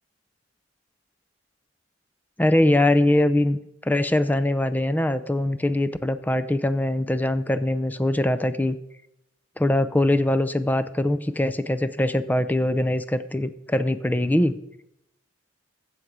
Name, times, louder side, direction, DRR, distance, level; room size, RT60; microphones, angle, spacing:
voice 1, 2.4-3.6 3.8-8.8 9.6-14.6, left 1 dB, 10° left, 12 dB, 0.4 m, -22 dB
13.5 x 7.9 x 4.8 m, 0.86 s
head